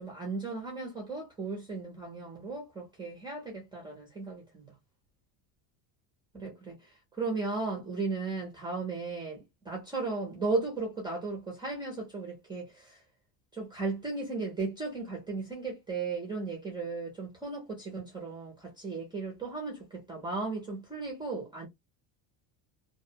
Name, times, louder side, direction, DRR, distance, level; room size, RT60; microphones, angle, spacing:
voice 1, 0.0-4.6 6.3-13.0 13.5-21.7, right 3 dB, 10° right, 0.4 m, -36 dB
2.5 x 2.0 x 2.7 m
cardioid pair, 170°, 46 cm